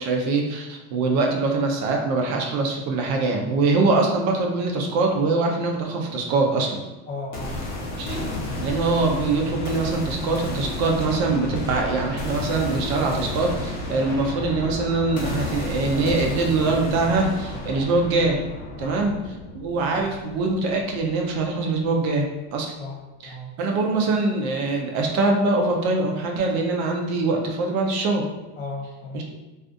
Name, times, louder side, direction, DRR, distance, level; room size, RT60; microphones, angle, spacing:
voice 1, 0.0-6.8 8.0-8.3 8.6-18.4 18.8-19.2 19.5-22.7 23.2-28.2 29.1-29.2, right 3 dB, 55° right, 1 dB, 0.5 m, -23 dB
voice 2, 7.1-7.6 17.7-17.9 18.8-19.0 20.0-20.2 22.8-23.0 23.3-23.5 28.6-29.2, left 2 dB, 35° left, -2 dB, 0.6 m, -35 dB
sound 1, 7.3-21.3, left 1 dB, 60° left, 0.8 m, -31 dB
2.4 x 2.4 x 2.4 m, 1.0 s
supercardioid pair, 135°, 34 cm